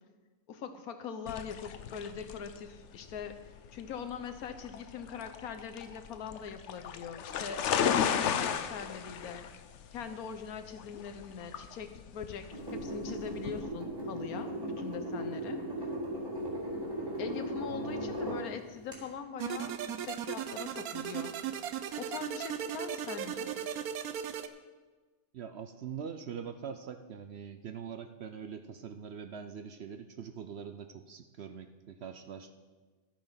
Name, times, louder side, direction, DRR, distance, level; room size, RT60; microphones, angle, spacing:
voice 1, 0.5-3.4 3.7-7.6 8.1-9.5 9.9-15.6 17.2-21.6 22.0-23.5, left 6 dB, 80° left, 8 dB, 1.4 m, -42 dB
sound 1, 1.3-13.6, left 8 dB, 60° left, 0.9 m, -35 dB
sound 2, 12.5-18.4 18.9-19.0, right 1 dB, 15° right, 3.5 m, -37 dB
sound 3, 19.4-24.5, right 9 dB, 85° right, 1.2 m, -37 dB
voice 2, 25.3-32.5, right 7 dB, 60° right, 8 dB, 0.7 m, -43 dB
12.5 x 8.7 x 5.7 m, 1.3 s
omnidirectional pair, 1.5 m